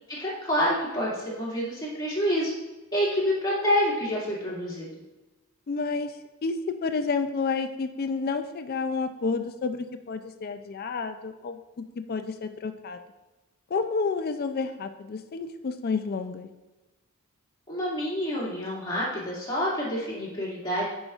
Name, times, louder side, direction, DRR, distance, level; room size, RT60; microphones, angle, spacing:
voice 1, 0.1-2.5 2.9-4.9 17.7-20.9, equal, 15° left, -6 dB, 2.1 m, -27 dB
voice 2, 5.7-6.1 6.4-6.6 6.8-13.0 13.7-16.5, left 4 dB, 45° left, 8 dB, 0.4 m, -30 dB
9.9 x 5.1 x 2.4 m, 1.1 s
head